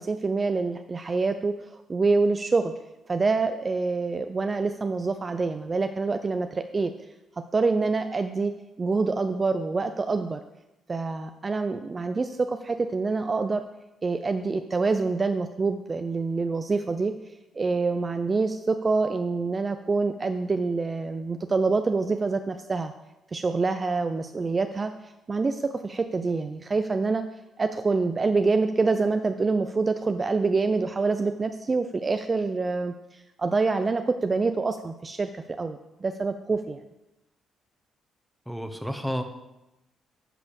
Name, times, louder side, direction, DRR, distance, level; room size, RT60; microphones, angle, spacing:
voice 1, 0.0-2.7 3.1-6.9 7.5-8.5 8.8-10.4 10.9-13.6 14.0-17.1 17.5-22.9 23.3-27.2 27.6-35.3 35.6-36.8, right 3 dB, 30° right, 8 dB, 0.4 m, -26 dB
voice 2, 38.5-39.2, equal, ahead, 7 dB, 1.1 m, -31 dB
9.9 x 4.2 x 7.0 m, 0.96 s
cardioid pair, 90°, 0 cm